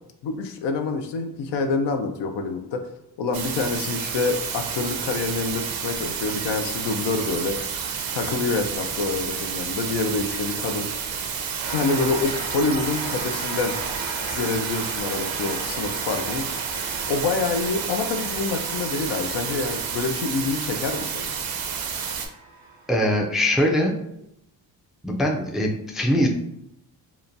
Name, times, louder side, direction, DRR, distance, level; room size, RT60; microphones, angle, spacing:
voice 1, 0.2-2.8 3.2-7.6 8.1-10.9 11.7-13.8 14.3-16.5 17.1-21.3, left 4 dB, 70° left, 6 dB, 0.5 m, -26 dB
sound 1, 3.3-22.3, right 6 dB, 55° right, 0.5 m, -30 dB
sound 2, 6.2-6.4 8.2-8.3 10.2-10.5 12.2-12.4 14.2-14.5 16.2-16.5, left 3 dB, 45° left, 1.2 m, -44 dB
sound 3, 11.6-23.1, right 3 dB, 90° right, 0.8 m, -37 dB
voice 2, 22.9-23.9 25.0-26.3, equal, ahead, 0 dB, 0.3 m, -22 dB
2.9 x 2.2 x 2.5 m, 0.79 s
cardioid pair, 75°, 43 cm